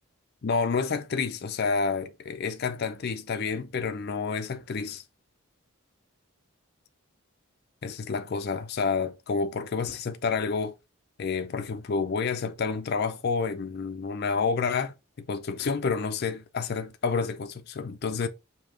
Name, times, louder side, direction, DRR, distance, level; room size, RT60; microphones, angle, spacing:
voice 1, 0.4-5.0 7.8-10.7 11.2-14.9 15.3-18.3, left 5 dB, 50° left, 0.4 m, -29 dB
5.0 x 2.8 x 3.6 m
head